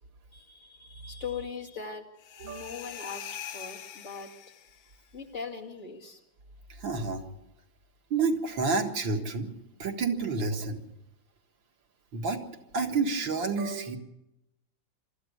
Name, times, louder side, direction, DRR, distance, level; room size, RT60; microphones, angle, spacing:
voice 1, 0.3-2.0 2.4-4.3 5.1-6.2, left 6 dB, 40° left, 0 dB, 2.5 m, -40 dB
sound 1, 2.2-4.9, left 9 dB, 85° left, 1.7 m, -43 dB
voice 2, 6.7-7.2 8.1-9.5 9.8-10.9 12.1-12.4 12.7-14.0, right 4 dB, 80° right, 3 dB, 2.5 m, -29 dB
23.5 x 13.5 x 8.0 m, 0.91 s
omnidirectional pair, 2.1 m